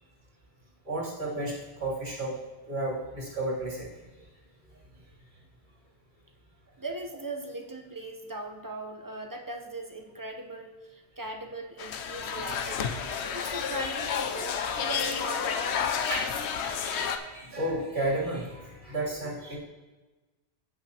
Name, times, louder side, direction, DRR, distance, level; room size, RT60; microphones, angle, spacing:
voice 1, 0.8-2.4 2.7-3.9 16.1-19.6, right 1 dB, 70° right, -7 dB, 3.5 m, -33 dB
voice 2, 6.8-12.9 13.3-15.9, right 2 dB, 20° right, 3 dB, 0.8 m, -39 dB
sound 1, 11.8-17.2, left 7 dB, 85° left, 0.9 m, -31 dB
15.5 x 5.8 x 2.9 m, 1.2 s
omnidirectional pair, 1.1 m